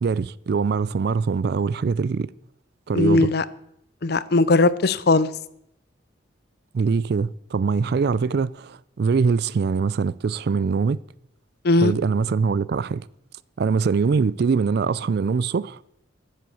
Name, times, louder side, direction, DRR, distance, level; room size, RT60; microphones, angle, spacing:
voice 1, 0.0-2.3 2.9-3.3 6.7-11.0 11.8-13.1 13.6-15.8, right 5 dB, 55° right, 0.4 m, -23 dB
voice 2, 2.9-3.4 4.0-5.3 11.6-11.9, left 2 dB, 55° left, 0.6 m, -18 dB
13.5 x 7.7 x 7.1 m
head